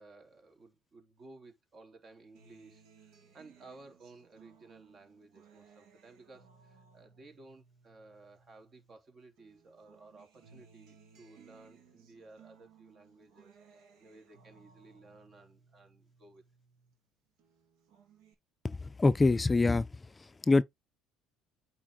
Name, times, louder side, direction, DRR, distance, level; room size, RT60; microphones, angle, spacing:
voice 1, 0.0-16.4, right 3 dB, 45° right, 3.6 m, -56 dB
Acoustic guitar, 2.3-9.0 9.4-17.0 17.4-18.3, right 6 dB, 75° right, 2.6 m, -62 dB
voice 2, 18.6-19.9 20.2-20.6, left 3 dB, 20° left, 0.5 m, -25 dB
8.6 x 4.4 x 3.8 m
supercardioid pair, 80°, 0 cm